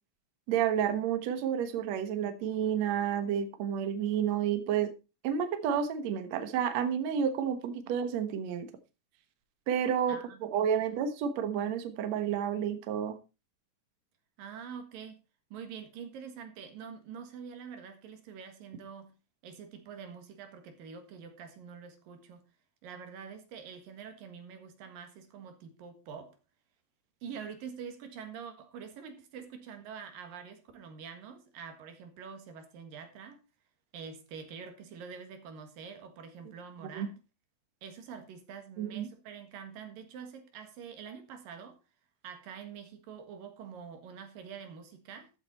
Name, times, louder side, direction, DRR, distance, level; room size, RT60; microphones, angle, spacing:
voice 1, 0.5-4.9 5.2-8.7 9.7-13.2 36.9-37.1 38.8-39.1, right 8 dB, 60° right, 2.2 m, -30 dB
voice 2, 10.1-11.0 14.4-15.2 15.5-19.1 19.4-22.4 22.8-26.4 27.2-33.4 33.9-37.1 37.8-41.8 42.2-45.3, right 6 dB, 85° right, 3.4 m, -46 dB
13.5 x 8.0 x 4.2 m
omnidirectional pair, 3.9 m